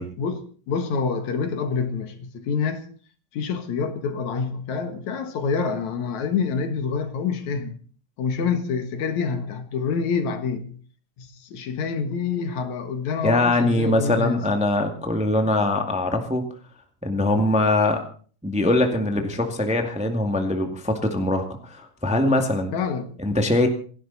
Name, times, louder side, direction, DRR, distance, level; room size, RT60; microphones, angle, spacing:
voice 1, 0.2-2.9 3.3-7.8 8.2-10.7 11.2-14.5 22.7-23.1, left 5 dB, 75° left, 2.9 m, -27 dB
voice 2, 13.2-16.4 17.0-18.0 18.4-22.7 23.2-23.7, left 2 dB, 5° right, 1.4 m, -22 dB
28.0 x 11.5 x 4.1 m
omnidirectional pair, 3.4 m